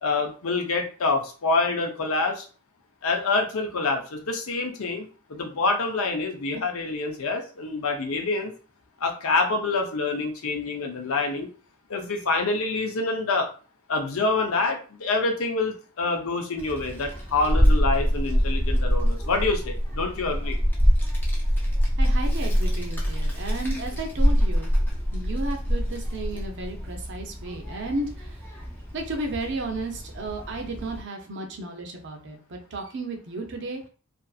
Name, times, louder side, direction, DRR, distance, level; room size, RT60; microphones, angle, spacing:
voice 1, 0.0-2.4 3.0-8.5 9.0-11.5 11.9-13.5 13.9-20.6, left 3 dB, 75° left, 4 dB, 0.6 m, -26 dB
Child speech kid speaking, 16.6-31.0, equal, 10° left, 0.5 m, -25 dB
voice 2, 22.0-24.7 25.1-28.4 28.9-33.9, right 2 dB, 55° right, 3 dB, 0.6 m, -33 dB
2.5 x 2.5 x 2.3 m, 0.37 s
head